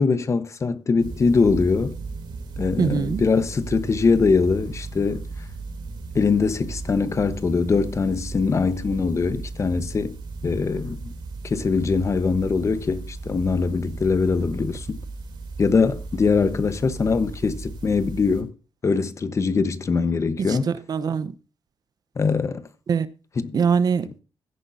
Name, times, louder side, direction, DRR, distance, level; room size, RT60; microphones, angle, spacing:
voice 1, 0.0-2.0 2.6-5.3 6.1-10.1 10.4-11.1 11.4-15.0 15.6-18.5 18.8-20.7 22.2-22.6 23.4-23.6, left 4 dB, 40° left, 1.1 m, -22 dB
sound 1, 1.0-18.4, right 3 dB, 70° right, 3.1 m, -36 dB
voice 2, 2.8-3.2 20.4-21.3 22.9-23.1 23.5-24.1, right 6 dB, 55° right, 0.8 m, -22 dB
16.0 x 10.0 x 2.7 m
cardioid pair, 110°, 8 cm